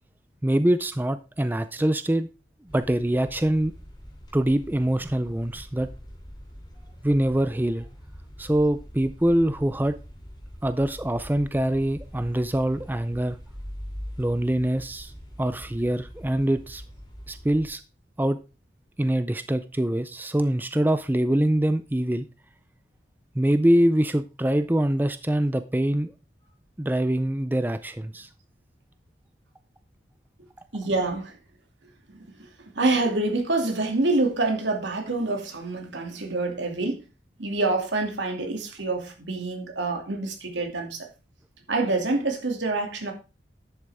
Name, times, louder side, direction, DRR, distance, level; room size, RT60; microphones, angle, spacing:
voice 1, 0.4-2.3 2.7-3.7 4.3-5.9 7.0-7.9 8.4-9.9 10.6-13.4 14.2-15.1 15.4-16.8 17.3-17.8 18.2-18.4 19.0-22.3 23.4-26.1 26.8-28.3, right 1 dB, 10° right, 0.4 m, -24 dB
sound 1, 2.7-17.7, equal, 25° left, 2.9 m, -43 dB
voice 2, 30.7-31.4 32.4-32.5 32.7-37.0 37.4-41.0 41.7-43.1, right 2 dB, 80° right, 2.5 m, -26 dB
11.0 x 8.0 x 3.5 m
head